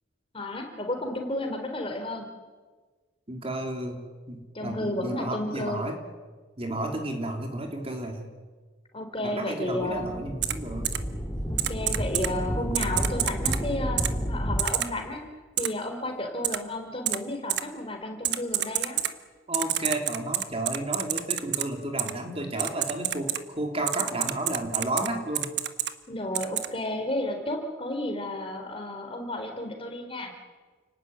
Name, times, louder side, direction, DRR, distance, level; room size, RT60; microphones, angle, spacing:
voice 1, 0.3-2.3 4.5-5.9 8.9-10.2 11.5-15.3 15.6-19.0 26.1-30.3, left 1 dB, 30° left, 4 dB, 4.1 m, -32 dB
voice 2, 3.3-6.0 6.6-8.3 9.2-10.9 19.5-25.5, right 1 dB, 30° right, 3 dB, 3.2 m, -32 dB
sound 1, 9.9-14.6, equal, 10° left, 3.8 m, -31 dB
Typing, 10.4-10.5 10.8-11.0 11.6-12.3 12.7-13.6 14.0-14.1 14.6-14.9 15.6-15.7 16.4-16.6 17.1-17.2 17.5-17.6 18.2-19.1 19.5-21.6 22.0-22.1 22.6-23.4 23.9-25.1 25.4-25.9 26.3-26.7, right 12 dB, 60° right, 1.3 m, -27 dB
29.5 x 19.0 x 9.7 m, 1.4 s
head